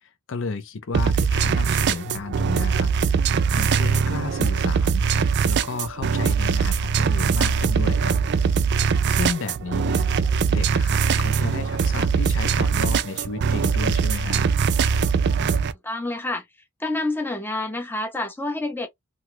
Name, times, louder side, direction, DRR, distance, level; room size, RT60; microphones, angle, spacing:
voice 1, 0.0-2.9 3.2-5.1 5.5-8.2 9.1-14.4, left 4 dB, 55° left, 0.5 m, -32 dB
sound 1, 0.9-15.7, right 6 dB, 50° right, 0.3 m, -21 dB
voice 2, 15.8-16.4 16.8-18.9, left 2 dB, 10° left, 0.6 m, -28 dB
2.9 x 2.3 x 3.0 m
head